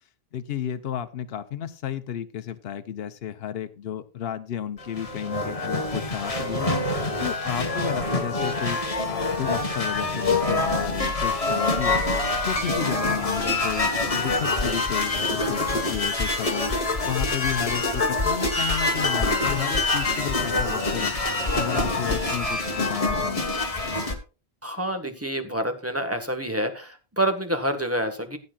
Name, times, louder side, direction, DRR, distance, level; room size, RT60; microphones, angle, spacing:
voice 1, 0.3-6.7 7.2-8.8 9.1-12.0 12.5-16.7 17.0-21.1 21.5-23.4, left 9 dB, 75° left, 9 dB, 0.9 m, -32 dB
sound 1, 4.8-24.1, left 2 dB, 35° left, 1.4 m, -25 dB
Bird, 10.5-12.9, left 3 dB, 80° right, 4.8 m, -38 dB
voice 2, 24.6-28.4, right 1 dB, 15° right, 7 dB, 1.3 m, -27 dB
16.0 x 8.8 x 2.3 m, 0.33 s
omnidirectional pair, 1.0 m